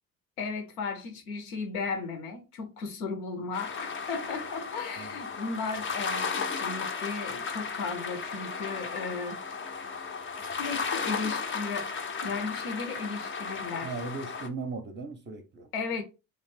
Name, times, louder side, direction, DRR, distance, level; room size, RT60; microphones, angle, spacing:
voice 1, 0.4-9.4 10.4-11.9 12.2-13.9 15.7-16.0, left 4 dB, 80° left, 0.7 m, -35 dB
sound 1, 3.5-14.5, left 5 dB, 30° left, 0.4 m, -35 dB
voice 2, 13.8-15.7, right 4 dB, 25° right, 0.6 m, -37 dB
2.5 x 2.1 x 3.3 m
hypercardioid pair, 45°, 45 cm